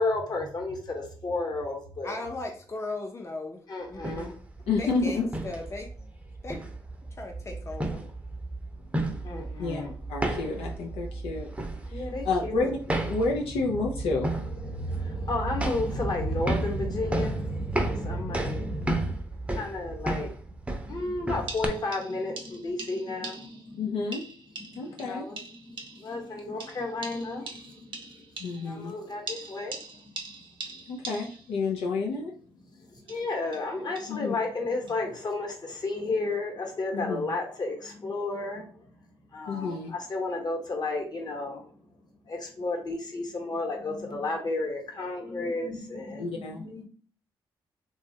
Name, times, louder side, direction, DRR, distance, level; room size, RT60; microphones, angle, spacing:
voice 1, 0.0-2.2 3.7-4.3 9.2-9.9 11.9-12.7 14.0-19.2 19.5-20.3 20.8-24.0 24.7-28.2 28.6-30.3 33.0-38.7 39.3-41.7 42.3-46.8, left 2 dB, 45° left, 1.0 m, -32 dB
voice 2, 2.0-3.6 3.9-4.4 4.8-5.9 6.4-6.6 7.2-8.0 25.0-25.1, left 2 dB, 30° left, 0.6 m, -37 dB
sound 1, 3.9-21.7, right 2 dB, 10° right, 0.6 m, -33 dB
voice 3, 4.7-5.3 9.6-9.8 10.1-11.5 11.9-12.8 13.1-14.3 23.8-24.2 24.8-25.2 28.4-29.0 30.9-32.3 34.1-34.3 36.9-37.3 39.5-39.9 46.2-46.6, left 3 dB, 85° left, 0.4 m, -30 dB
sound 2, 21.0-21.1 21.5-23.7 24.1-26.2 26.6-28.8 29.3-31.6 32.9-34.2 34.9-35.0, right 3 dB, 60° right, 0.7 m, -42 dB
3.0 x 2.3 x 2.7 m
supercardioid pair, 60°, 10 cm